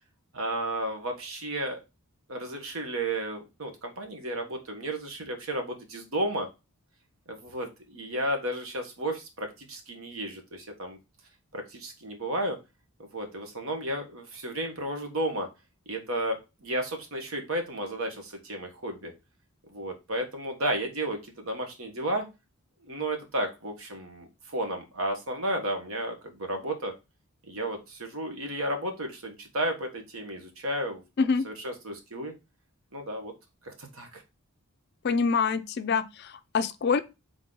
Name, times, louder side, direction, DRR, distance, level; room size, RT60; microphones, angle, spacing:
voice 1, 0.3-1.8 2.3-6.5 7.3-11.0 11.5-12.6 13.1-15.5 15.9-19.1 19.7-22.3 22.8-26.9 27.5-31.0 31.4-32.3 32.9-33.3 33.6-34.2, right 1 dB, 65° right, 1.1 m, -33 dB
voice 2, 35.0-37.0, left 5 dB, 45° left, 0.3 m, -26 dB
3.8 x 3.6 x 3.7 m
head